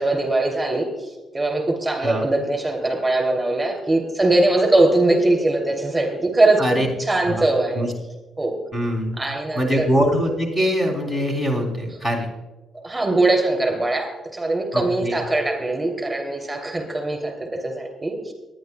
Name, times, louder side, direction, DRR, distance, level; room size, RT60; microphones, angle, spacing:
voice 1, 0.0-7.8 8.4-8.5 9.2-9.9 12.7-18.3, right 2 dB, 15° right, 2 dB, 2.9 m, -21 dB
voice 2, 8.7-9.2 9.6-12.3 14.7-15.2, equal, 20° left, 0 dB, 3.3 m, -23 dB
22.5 x 10.5 x 2.3 m, 1.2 s
cardioid pair, 90°, 0 cm